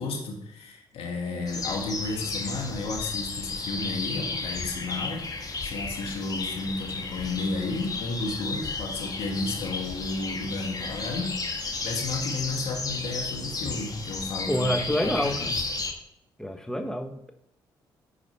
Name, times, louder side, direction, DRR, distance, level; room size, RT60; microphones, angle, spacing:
voice 1, 0.0-5.2 5.6-14.7 15.0-15.6, left 3 dB, 75° left, 1 dB, 1.9 m, -32 dB
sound 1, 1.5-15.9, left 3 dB, 40° left, 1.7 m, -33 dB
voice 2, 14.5-15.5 16.4-17.3, equal, 5° left, 5 dB, 1.3 m, -28 dB
10.0 x 4.9 x 5.8 m, 0.77 s
supercardioid pair, 55°, 10 cm